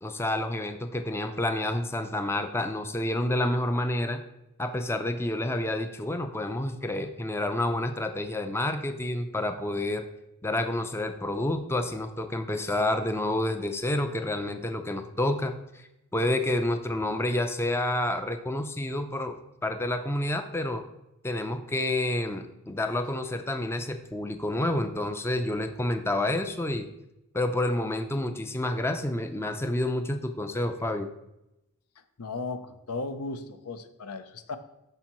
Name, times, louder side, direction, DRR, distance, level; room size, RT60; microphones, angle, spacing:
voice 1, 0.0-4.2 4.6-10.0 10.4-15.9 16.1-19.4 19.6-20.8 21.2-26.9 27.3-31.1, left 1 dB, 10° left, 7 dB, 0.4 m, -29 dB
voice 2, 32.2-34.6, left 3 dB, 85° left, 9 dB, 0.6 m, -36 dB
13.0 x 4.5 x 3.0 m, 0.89 s
head